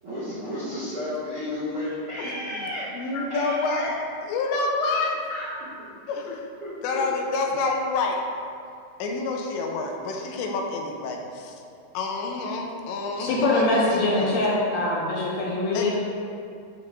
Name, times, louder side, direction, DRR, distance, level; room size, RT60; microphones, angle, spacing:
voice 1, 0.0-3.9 5.3-5.9 6.6-7.0, left 1 dB, 45° right, -12 dB, 1.8 m, -33 dB
voice 2, 2.2-2.7 2.9-5.2 6.1-6.5 6.8-8.2 9.0-11.6 11.9-14.4 15.7-15.9, left 3 dB, 85° left, 1 dB, 3.0 m, -28 dB
voice 3, 13.2-15.9, left 2 dB, 70° left, -5 dB, 2.7 m, -23 dB
10.5 x 7.5 x 2.6 m, 2.4 s
omnidirectional pair, 5.1 m